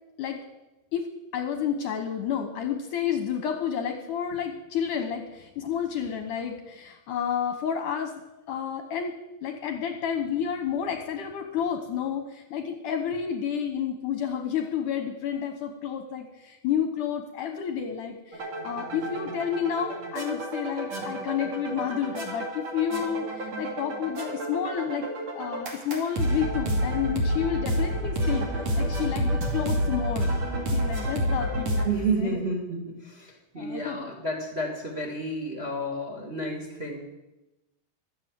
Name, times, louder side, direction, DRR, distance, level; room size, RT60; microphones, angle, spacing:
voice 1, 1.3-8.1 8.5-9.2 9.4-25.0 25.4-32.4 33.6-34.1, left 8 dB, 70° left, 6 dB, 2.2 m, -30 dB
sound 1, 18.3-31.9, equal, 45° right, 3.3 m, -29 dB
voice 2, 31.8-37.0, right 2 dB, 20° right, 2 dB, 1.8 m, -31 dB
15.0 x 12.0 x 7.5 m, 1.0 s
omnidirectional pair, 4.5 m